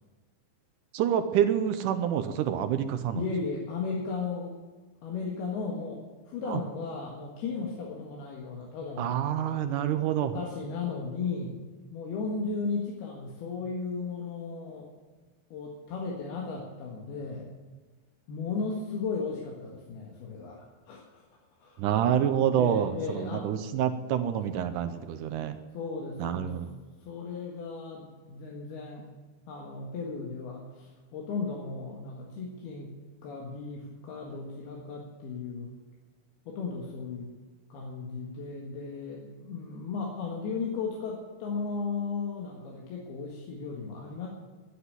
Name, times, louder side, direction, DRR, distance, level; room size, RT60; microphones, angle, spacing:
voice 1, 0.9-3.3 6.5-6.6 9.0-10.4 21.8-25.6 26.2-26.7, right 9 dB, 70° right, 9 dB, 2.0 m, -27 dB
voice 2, 3.1-4.6 5.0-9.2 10.2-11.6 11.9-14.9 15.5-17.5 18.3-21.2 21.6-21.8 22.6-23.5 25.7-26.5 27.0-29.1 29.5-32.9 33.2-35.7 36.5-37.3 37.7-44.3, left 4 dB, 85° left, -2 dB, 3.7 m, -35 dB
12.0 x 10.0 x 9.6 m, 1.4 s
omnidirectional pair, 4.4 m